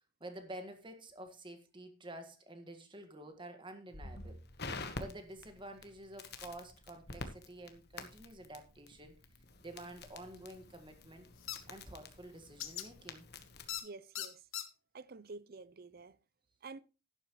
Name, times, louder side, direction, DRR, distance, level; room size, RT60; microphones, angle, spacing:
voice 1, 0.2-4.4 4.9-9.1 9.6-11.3 11.7-13.3, right 1 dB, 25° right, 1.7 m, -49 dB
Crackle, 3.9-13.8, left 3 dB, 50° left, 1.3 m, -48 dB
sound 1, 11.5-11.6 12.6-12.9 13.7-13.8 14.1-14.6, left 11 dB, 75° left, 1.3 m, -39 dB
voice 2, 13.8-14.4 14.9-16.2 16.6-16.8, right 3 dB, 45° right, 0.6 m, -49 dB
11.5 x 11.0 x 3.1 m
head